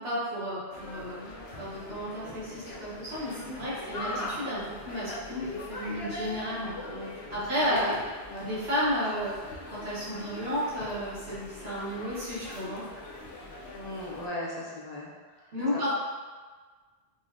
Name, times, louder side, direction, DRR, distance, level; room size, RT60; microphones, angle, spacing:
voice 1, 0.0-6.7 7.3-7.9 8.4-12.8 15.5-15.9, equal, 75° right, -10 dB, 1.5 m, -32 dB
sound 1, 0.7-14.3, left 1 dB, 80° left, 0.8 m, -42 dB
voice 2, 6.6-7.2 7.7-8.0 8.3-8.5 13.7-15.1 15.4-15.9, left 1 dB, 45° left, -4 dB, 0.7 m, -38 dB
4.8 x 2.1 x 2.6 m, 1.4 s
omnidirectional pair, 1.1 m